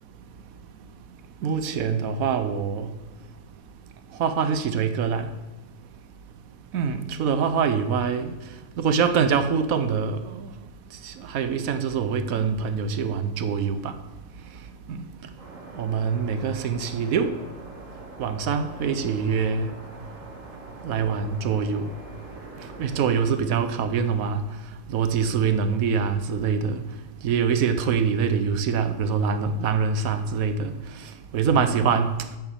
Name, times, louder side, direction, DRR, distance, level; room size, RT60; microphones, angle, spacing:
voice 1, 1.4-2.9 4.2-5.3 6.7-8.3 8.8-10.4 11.0-13.9 14.9-15.0 15.8-17.3 18.2-19.7 20.8-21.9 22.8-24.4 24.9-26.8 27.2-30.7 31.3-32.2, right 6 dB, 85° right, 1.2 m, -24 dB
sound 1, 15.4-23.1, right 2 dB, 70° right, 2.3 m, -43 dB
8.2 x 7.0 x 7.0 m
omnidirectional pair, 1.4 m